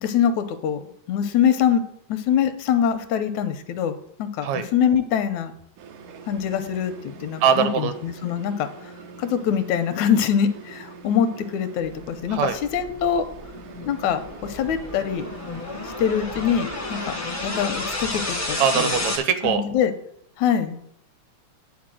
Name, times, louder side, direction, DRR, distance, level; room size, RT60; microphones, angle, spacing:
voice 1, 0.0-5.5 6.3-8.9 9.2-13.3 13.9-15.3 15.8-17.1 17.4-18.9 19.4-19.9 20.4-20.8, left 8 dB, 80° left, 9 dB, 2.0 m, -24 dB
sound 1, 5.8-17.2, right 5 dB, 90° right, 2.4 m, -44 dB
voice 2, 7.4-7.9 12.3-12.6 18.6-19.6, right 8 dB, 75° right, 9 dB, 2.0 m, -21 dB
sound 2, 12.2-19.2, left 2 dB, 35° left, 0.5 m, -31 dB
9.5 x 4.3 x 7.6 m, 0.68 s
omnidirectional pair, 3.4 m